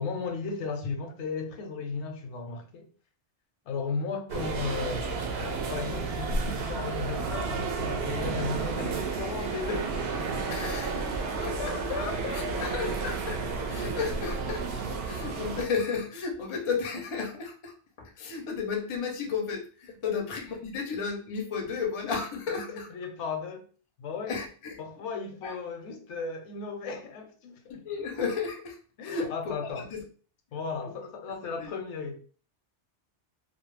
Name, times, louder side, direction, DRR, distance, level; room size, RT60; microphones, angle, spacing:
voice 1, 0.0-2.9 3.7-5.1 5.4-10.0 11.3-12.7 20.0-20.1 22.5-23.7 24.0-24.4 24.8-27.8 29.0-29.9 30.5-32.2, left 5 dB, 80° left, 0.9 m, -35 dB
sound 1, 4.3-15.6, right 4 dB, 65° right, 0.7 m, -32 dB
voice 2, 10.5-11.6 12.3-13.4 13.7-22.9 24.3-24.8 25.4-25.5 27.7-29.3 29.8-30.0 31.6-31.7, left 5 dB, 40° left, 0.4 m, -33 dB
2.3 x 2.0 x 3.1 m
omnidirectional pair, 1.2 m